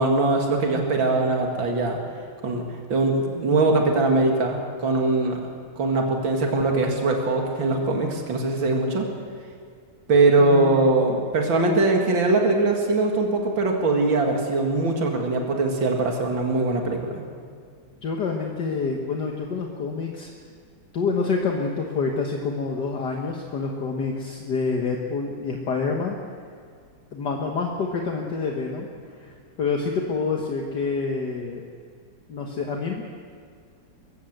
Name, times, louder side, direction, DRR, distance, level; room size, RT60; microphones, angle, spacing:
voice 1, 0.0-2.0 2.4-2.6 2.9-5.4 5.8-9.0 10.1-17.2, right 2 dB, 75° right, 1 dB, 2.9 m, -21 dB
voice 2, 10.4-11.0 18.0-20.3 20.9-26.2 27.1-31.6 32.3-33.0, left 4 dB, 60° left, 1 dB, 2.0 m, -27 dB
22.0 x 15.5 x 8.0 m, 2.1 s
omnidirectional pair, 2.1 m